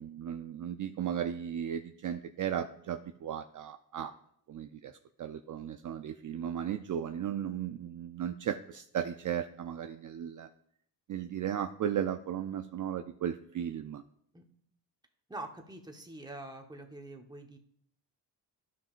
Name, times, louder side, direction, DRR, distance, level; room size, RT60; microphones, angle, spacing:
voice 1, 0.0-4.1 4.5-10.5 11.1-14.0, right 9 dB, 50° right, 8 dB, 0.5 m, -36 dB
voice 2, 15.3-17.6, right 2 dB, 10° right, 3 dB, 1.0 m, -45 dB
12.5 x 5.9 x 2.5 m, 0.68 s
cardioid pair, 85°, 42 cm